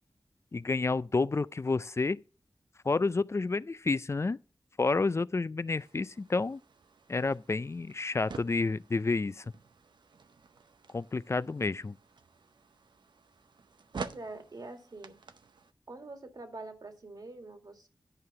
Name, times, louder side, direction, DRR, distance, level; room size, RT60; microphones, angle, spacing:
voice 1, 0.5-2.2 2.8-4.4 4.8-6.6 7.1-9.4 10.9-12.0, left 3 dB, 35° left, 0.4 m, -30 dB
sound 1, 5.7-15.7, right 4 dB, 90° right, 0.6 m, -49 dB
voice 2, 13.9-15.2 15.9-17.9, right 2 dB, 55° right, 1.8 m, -45 dB
11.0 x 4.7 x 6.7 m
wide cardioid pair, 60°, 8 cm